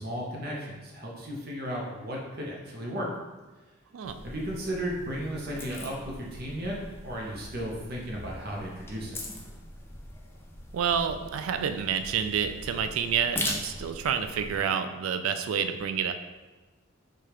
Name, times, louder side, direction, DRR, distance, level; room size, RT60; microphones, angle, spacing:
voice 1, 0.0-3.1 4.2-6.8 7.0-9.2, equal, 50° right, -3 dB, 0.7 m, -35 dB
sound 1, 4.0-14.6, left 1 dB, 10° left, 0.3 m, -40 dB
voice 2, 10.7-16.1, right 7 dB, 90° right, 8 dB, 0.3 m, -29 dB
4.8 x 2.4 x 2.9 m, 1.2 s
head